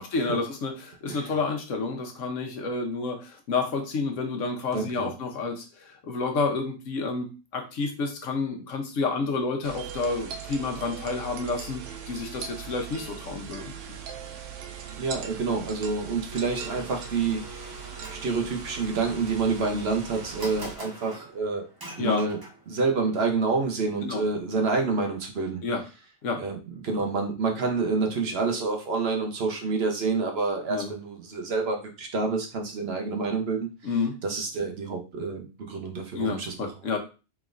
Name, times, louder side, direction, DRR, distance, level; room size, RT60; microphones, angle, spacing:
voice 1, 0.0-13.6 13.9-14.0 22.0-22.2 24.0-24.2 25.6-25.8 26.2-26.4 30.7-30.9 33.8-34.2 36.1-37.0, left 4 dB, 80° left, 4 dB, 1.2 m, -30 dB
voice 2, 4.7-5.1 15.0-21.7 22.0-22.4 22.7-25.6 26.4-26.6 26.8-33.7 34.2-36.7, right 4 dB, 60° right, 2 dB, 1.0 m, -28 dB
sound 1, 9.6-20.8, right 8 dB, 80° right, 0.9 m, -40 dB
Domestic sounds home sounds, 16.3-22.8, equal, 20° right, 0.8 m, -44 dB
4.1 x 3.4 x 2.5 m, 0.31 s
omnidirectional pair, 1.3 m